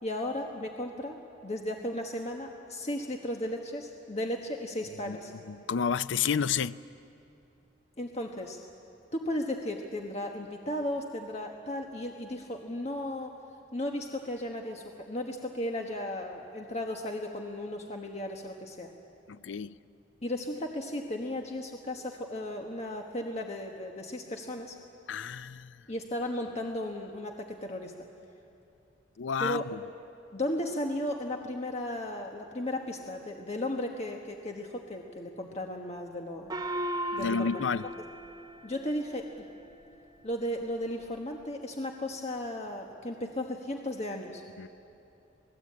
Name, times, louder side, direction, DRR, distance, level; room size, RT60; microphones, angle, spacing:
voice 1, 0.0-5.3 8.0-8.6 9.1-13.3 13.7-18.9 20.2-24.8 25.9-28.1 29.4-29.6 30.3-36.5 37.1-37.9 38.6-39.3 40.2-44.4, left 1 dB, 35° left, 1.3 m, -35 dB
voice 2, 5.5-6.8 19.3-19.8 25.1-25.8 29.2-29.8 37.2-37.9 44.6-44.7, left 6 dB, 85° left, 0.5 m, -30 dB
Gong, 36.5-39.4, equal, 20° right, 1.0 m, -36 dB
27.0 x 19.0 x 8.6 m
head